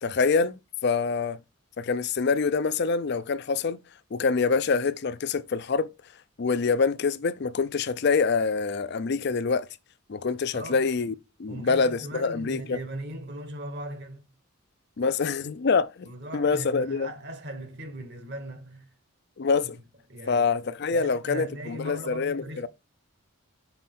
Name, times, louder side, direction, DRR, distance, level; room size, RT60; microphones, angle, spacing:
voice 1, 0.0-1.4 1.8-3.8 4.1-5.9 6.4-9.7 10.1-11.1 11.4-12.8 15.0-17.1 19.4-19.8 20.3-22.7, left 4 dB, 50° left, 0.4 m, -25 dB
voice 2, 11.5-14.2 16.0-18.9 19.6-19.7 20.1-22.7, right 1 dB, 50° right, 1.2 m, -39 dB
5.8 x 5.2 x 3.6 m
head